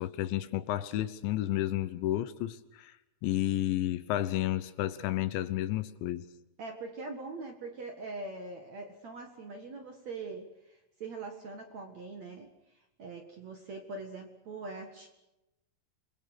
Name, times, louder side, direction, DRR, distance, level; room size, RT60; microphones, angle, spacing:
voice 1, 0.0-2.9 3.2-6.3, left 14 dB, 75° left, 3.2 m, -31 dB
voice 2, 6.6-12.5 13.0-15.1, right 3 dB, 50° right, 2.2 m, -42 dB
28.0 x 21.5 x 6.7 m
omnidirectional pair, 5.5 m